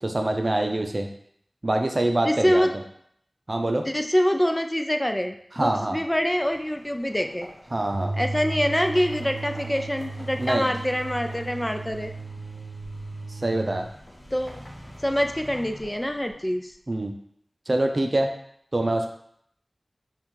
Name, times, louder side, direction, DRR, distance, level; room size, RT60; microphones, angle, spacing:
voice 1, 0.0-1.1 1.6-2.7 3.5-3.9 5.5-6.0 7.7-8.1 10.4-10.7 13.3-13.9 16.9-17.1 17.7-18.3 18.7-19.1, right 1 dB, 50° right, 4 dB, 0.5 m, -25 dB
voice 2, 2.2-2.7 3.8-7.5 8.2-12.1 14.3-14.6 15.0-16.7, equal, 15° left, 6 dB, 0.3 m, -25 dB
sound 1, 6.0-16.7, equal, 50° left, 1.6 m, -47 dB
sound 2, 7.9-13.9, right 2 dB, 90° right, 0.7 m, -35 dB
5.3 x 2.5 x 3.1 m, 0.68 s
wide cardioid pair, 40°, 0 cm